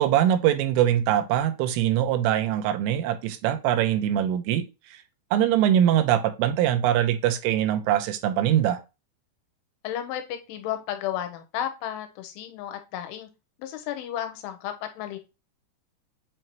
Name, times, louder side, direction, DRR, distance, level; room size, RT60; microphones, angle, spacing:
voice 1, 0.0-4.7 5.3-8.8, right 11 dB, 90° right, 3.3 m, -22 dB
voice 2, 9.8-13.3 13.6-15.2, left 11 dB, 85° left, 3.3 m, -33 dB
7.9 x 2.8 x 4.4 m
omnidirectional pair, 5.6 m